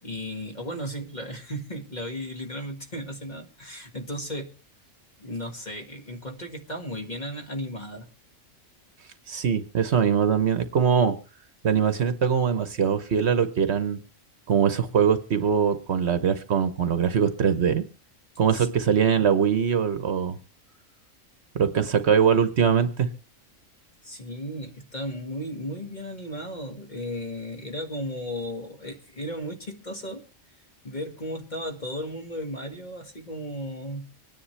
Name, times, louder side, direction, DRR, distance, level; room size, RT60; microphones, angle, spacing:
voice 1, 0.0-4.5 5.2-8.1 18.5-19.2 24.0-30.2 30.8-34.1, equal, 35° left, 3 dB, 1.9 m, -35 dB
voice 2, 9.3-11.2 11.6-14.0 14.5-17.8 18.4-20.4 21.5-23.1, right 7 dB, 60° right, 10 dB, 1.1 m, -22 dB
25.0 x 10.0 x 3.2 m, 0.34 s
omnidirectional pair, 1.4 m